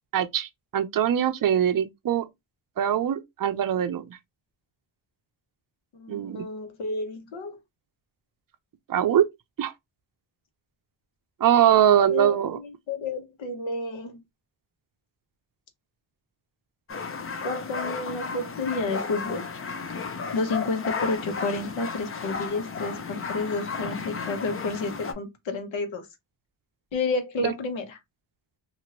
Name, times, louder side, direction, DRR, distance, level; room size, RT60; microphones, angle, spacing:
voice 1, 0.1-2.3 2.8-4.2 6.1-6.4 8.9-9.3 9.6-9.7 11.4-12.6 27.4-27.5, right 10 dB, 45° right, 0.5 m, -22 dB
voice 2, 5.9-7.6 12.1-12.4 12.6-14.2 17.4-19.5 20.3-26.1 26.9-28.0, left 3 dB, 75° left, 1.0 m, -30 dB
sound 1, 16.9-25.1, left 5 dB, 30° left, 0.5 m, -34 dB
2.8 x 2.5 x 2.9 m
wide cardioid pair, 135°, 46 cm